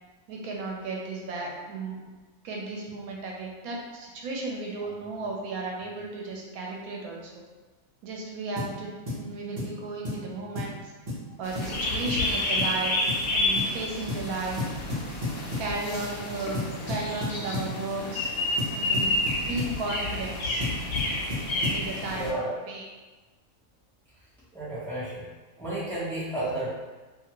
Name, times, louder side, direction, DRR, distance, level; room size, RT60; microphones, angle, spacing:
voice 1, 0.3-2.0 2.4-7.3 8.0-10.9 11.4-13.0 13.3-14.7 15.6-18.3 18.7-19.1 19.4-20.7 21.7-22.9, right 3 dB, 85° right, -1 dB, 1.1 m, -34 dB
sound 1, 8.6-8.8 9.1-9.2 9.6-9.8 10.0-10.2 10.6-10.8 11.1-11.2 11.6-11.7 12.1-12.3 12.6-12.8 13.1-13.3 13.6-13.7 14.1-14.3 14.6-15.7 16.5-17.7 18.6-19.8 20.6-21.9, left 2 dB, 35° right, 0.9 m, -32 dB
sound 2, 11.4-22.3, left 2 dB, 80° left, 1.1 m, -30 dB
voice 2, 22.1-22.6 24.5-25.2 25.6-26.7, right 1 dB, ahead, -10 dB, 0.7 m, -32 dB
2.7 x 2.5 x 2.9 m, 1.3 s
omnidirectional pair, 1.5 m